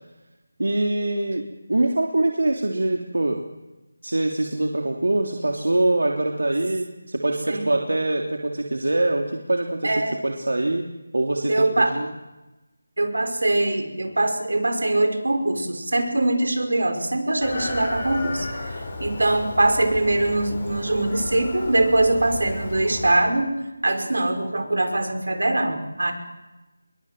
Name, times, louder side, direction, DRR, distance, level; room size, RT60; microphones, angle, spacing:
voice 1, 0.6-1.4 1.7-3.4 4.0-10.9 11.1-12.1, right 2 dB, 85° right, 2 dB, 3.3 m, -24 dB
voice 2, 9.8-10.2 11.5-11.9 13.0-18.5 19.0-23.6 23.8-26.1, right 2 dB, 70° right, 6 dB, 5.8 m, -22 dB
Chicken rooster, 17.4-23.2, left 2 dB, 20° left, 4.9 m, -33 dB
28.0 x 23.0 x 7.8 m, 1.0 s
figure-of-eight pair, 180°, 0 cm